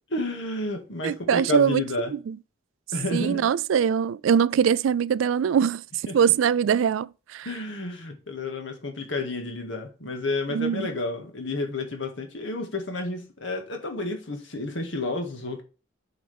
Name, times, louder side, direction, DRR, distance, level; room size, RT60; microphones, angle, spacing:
voice 1, 0.1-2.1 2.9-3.5 6.1-6.3 7.4-15.6, left 2 dB, 75° left, 1.9 m, -31 dB
voice 2, 1.0-1.8 2.3-2.4 3.1-5.8 6.1-7.5 10.5-10.9, right 7 dB, 90° right, 0.3 m, -22 dB
8.5 x 4.9 x 3.4 m
head